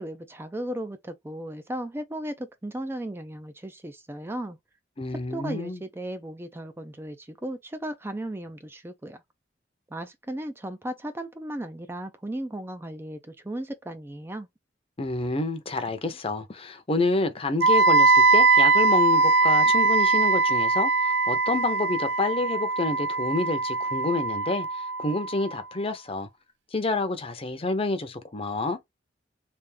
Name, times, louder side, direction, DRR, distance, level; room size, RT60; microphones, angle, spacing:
voice 1, 0.0-4.6 5.1-9.2 9.9-14.5, right 1 dB, 15° right, 0.4 m, -36 dB
voice 2, 5.0-5.8 15.0-26.3 26.7-28.8, left 3 dB, 30° left, 0.7 m, -28 dB
Wind instrument woodwind instrument, 17.6-25.5, right 3 dB, 85° right, 0.5 m, -21 dB
3.4 x 2.5 x 3.3 m
head